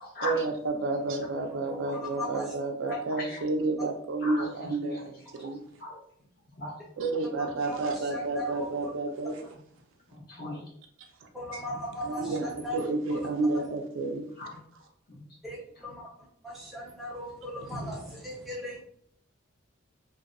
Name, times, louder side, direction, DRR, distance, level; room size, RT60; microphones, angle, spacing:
voice 1, 0.2-5.6 7.0-9.5 11.5-11.6 12.0-14.3, right 3 dB, 65° right, 4 dB, 0.4 m, -30 dB
voice 2, 1.7-2.5 2.9-3.0 7.4-8.9 11.3-12.8 15.4-16.0 16.4-18.8, equal, ahead, -5 dB, 0.7 m, -37 dB
voice 3, 2.8-3.4 4.2-4.5 5.3-5.5 5.8-6.0 6.6-6.7 10.1-10.6 12.2-12.5 14.4-14.5, left 2 dB, 45° left, -5 dB, 1.0 m, -37 dB
2.6 x 2.2 x 2.5 m, 0.63 s
head